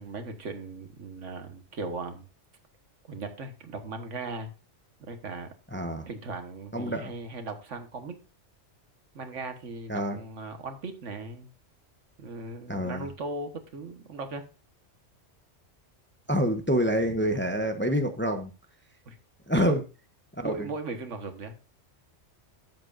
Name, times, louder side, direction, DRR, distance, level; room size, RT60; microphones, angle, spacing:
voice 1, 0.0-2.3 3.1-4.5 5.0-5.5 6.1-8.2 9.2-11.5 12.2-14.4 19.1-19.2 20.4-21.6, right 3 dB, 85° right, 7 dB, 1.6 m, -38 dB
voice 2, 5.7-6.1 6.7-7.1 9.9-10.2 12.7-13.1 16.3-18.5 19.5-19.8 20.4-20.7, equal, 10° left, 6 dB, 0.7 m, -27 dB
12.5 x 7.9 x 2.5 m, 0.31 s
omnidirectional pair, 1.2 m